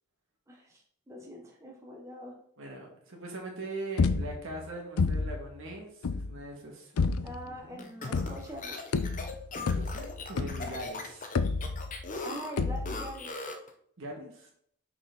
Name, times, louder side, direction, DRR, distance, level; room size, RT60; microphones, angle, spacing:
voice 1, 0.5-0.8 1.1-2.4 7.2-8.8 12.2-13.3, equal, 15° right, -1 dB, 1.0 m, -43 dB
voice 2, 2.6-6.9 7.4-7.9 9.6-11.3 14.0-14.5, right 2 dB, 65° right, 0 dB, 1.9 m, -41 dB
sound 1, 4.0-4.6 5.0-5.5 6.0-6.4 7.0-7.5 8.1-8.6 8.9-10.8 11.3-12.1 12.6-13.1, left 4 dB, 90° left, 0.5 m, -30 dB
sound 2, 7.8-13.7, left 3 dB, 40° left, 0.8 m, -40 dB
6.5 x 4.5 x 4.0 m, 0.66 s
head